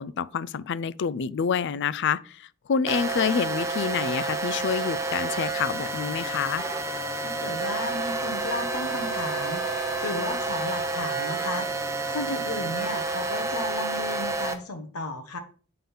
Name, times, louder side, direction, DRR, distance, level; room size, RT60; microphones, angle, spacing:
voice 1, 0.0-6.7, left 6 dB, 55° left, 0.4 m, -28 dB
sound 1, 2.9-14.5, right 3 dB, 15° right, 1.0 m, -29 dB
voice 2, 7.2-11.7 12.1-15.4, left 2 dB, 80° left, 1.0 m, -34 dB
8.5 x 3.8 x 5.5 m
head